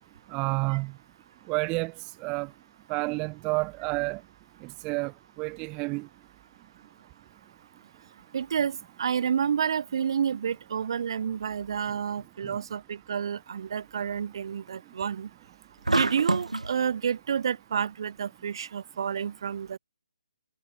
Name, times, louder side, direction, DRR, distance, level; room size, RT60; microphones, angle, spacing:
voice 1, 0.3-0.9 1.5-1.9 2.2-2.5 2.9-4.2 4.8-5.1 5.4-6.1, right 28 dB, 20° right, 1.1 m, -29 dB
voice 2, 8.3-15.3 15.9-19.8, right 7 dB, 45° right, 1.5 m, -29 dB
sound 1, 15.9-16.7, right 2 dB, 80° right, 1.4 m, -26 dB
figure-of-eight pair, 140°, 4 cm